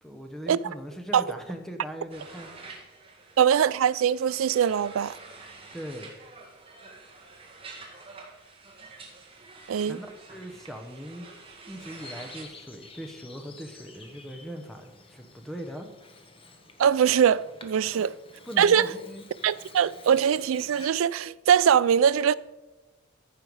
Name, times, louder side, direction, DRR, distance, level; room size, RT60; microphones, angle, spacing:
voice 1, 0.0-2.8 5.7-6.1 9.8-11.3 11.7-15.9 17.9-18.0 18.5-19.2, equal, ahead, 1.0 m, -40 dB
sound 1, 2.1-12.4, right 3 dB, 30° right, 1.7 m, -47 dB
voice 2, 3.4-5.2 9.7-10.0 16.8-18.1 18.6-18.9 19.4-22.3, right 8 dB, 80° right, 0.3 m, -22 dB
Bird vocalization bird call bird song, 11.8-20.9, left 3 dB, 25° left, 1.0 m, -50 dB
14.5 x 5.7 x 4.7 m
head